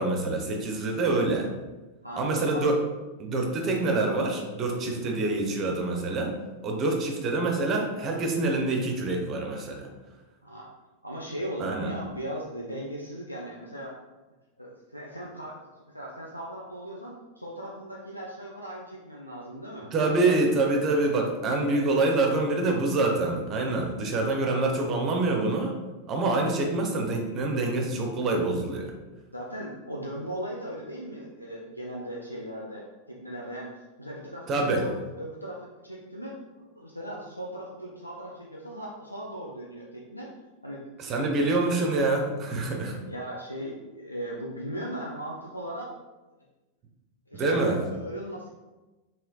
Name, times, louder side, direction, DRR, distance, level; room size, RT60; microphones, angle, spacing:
voice 1, 0.0-1.5 2.2-2.8 3.2-6.3 6.6-9.9 11.6-11.9 19.9-25.7 26.1-28.9 34.5-34.8 41.0-43.0 47.3-47.8, right 2 dB, 30° right, 2 dB, 0.5 m, -26 dB
voice 2, 2.0-2.7 4.8-5.2 10.4-10.7 11.0-14.0 14.6-15.6 15.9-19.9 24.4-24.5 29.3-34.9 35.2-36.4 36.8-40.3 40.6-41.2 42.8-45.9 47.3-48.5, right 1 dB, 90° left, -3 dB, 0.3 m, -38 dB
3.1 x 2.8 x 2.3 m, 1.1 s
figure-of-eight pair, 90°, 0 cm